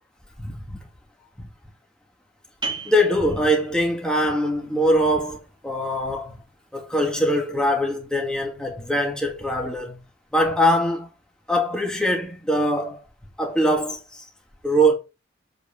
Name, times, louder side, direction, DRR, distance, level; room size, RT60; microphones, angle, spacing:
voice 1, 0.4-0.8 2.8-6.4 6.7-10.0 10.3-11.1 11.5-13.0 13.4-14.2 14.6-14.9, equal, 5° left, 2.4 m, -22 dB
sound 1, 2.6-8.0, right 4 dB, 25° right, 2.6 m, -39 dB
8.2 x 5.0 x 6.6 m
head